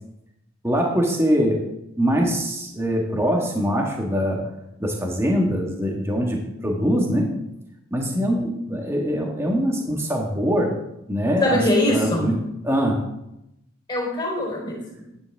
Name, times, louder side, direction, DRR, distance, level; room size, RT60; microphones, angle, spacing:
voice 1, 0.6-1.6 2.0-4.4 4.8-7.3 7.9-10.7 11.1-11.6 11.9-12.3 12.6-13.0, equal, 10° right, 0 dB, 1.7 m, -23 dB
voice 2, 11.4-12.3 13.9-15.0, left 1 dB, 20° left, -1 dB, 3.8 m, -22 dB
14.0 x 10.5 x 3.5 m, 0.85 s
head